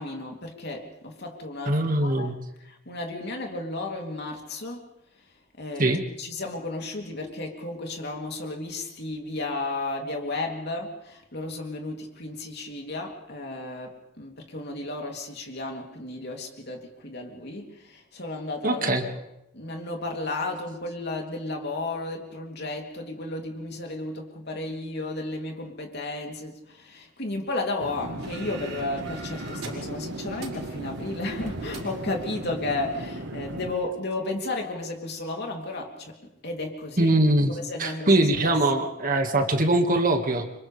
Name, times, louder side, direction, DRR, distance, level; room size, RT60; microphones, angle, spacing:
voice 1, 0.0-2.3 2.6-4.9 5.6-19.2 19.5-37.1 37.5-38.5, left 2 dB, 55° left, 1 dB, 3.1 m, -33 dB
voice 2, 1.7-2.4 5.8-6.0 18.6-19.0 37.0-40.5, right 1 dB, 45° right, 5 dB, 1.9 m, -22 dB
sound 1, 27.8-33.7, right 2 dB, 60° right, 1.3 m, -37 dB
sound 2, 28.2-33.1, right 2 dB, 85° right, 5.2 m, -43 dB
29.5 x 26.0 x 3.4 m, 0.85 s
head